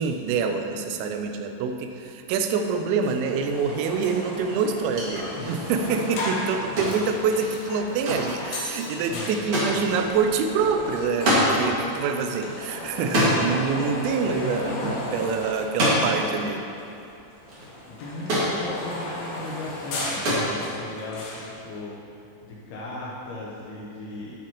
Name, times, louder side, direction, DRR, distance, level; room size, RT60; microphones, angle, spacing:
voice 1, 0.0-16.6, right 5 dB, 85° right, 5 dB, 3.3 m, -26 dB
sound 1, 2.6-2.7 3.0-16.5 16.8-21.5, left 1 dB, 65° left, 2.7 m, -36 dB
sound 2, 4.8-11.5 11.8-11.9 12.2-13.6 14.3-14.6 14.8-15.0 15.6-16.3 17.1-17.2 17.4-18.6 19.4-19.7 20.0-20.9, equal, 50° right, 1.7 m, -27 dB
voice 2, 9.1-9.4 13.9-14.0 14.2-15.1 17.9-21.3 21.6-21.9 22.4-24.4, left 2 dB, 90° left, -5 dB, 2.2 m, -37 dB
12.5 x 7.5 x 3.0 m, 2.6 s
omnidirectional pair, 5.9 m